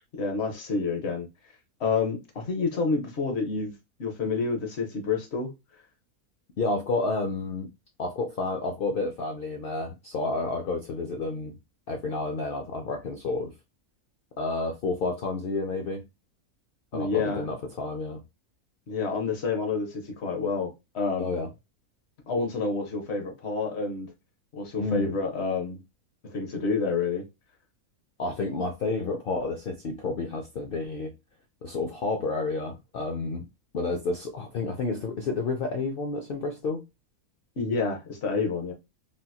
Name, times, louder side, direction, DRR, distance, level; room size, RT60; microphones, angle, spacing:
voice 1, 0.2-1.3 1.8-3.7 4.0-5.5 16.9-17.4 18.9-21.3 22.3-24.1 24.5-25.8 26.2-27.3 37.6-38.7, left 4 dB, 50° left, 1.0 m, -28 dB
voice 2, 6.6-7.7 8.0-11.5 11.9-13.5 14.4-16.0 16.9-18.2 21.2-21.5 24.8-25.1 28.2-31.1 31.6-33.5 33.7-36.8, left 3 dB, 85° left, 0.4 m, -30 dB
3.4 x 2.8 x 2.2 m
omnidirectional pair, 1.6 m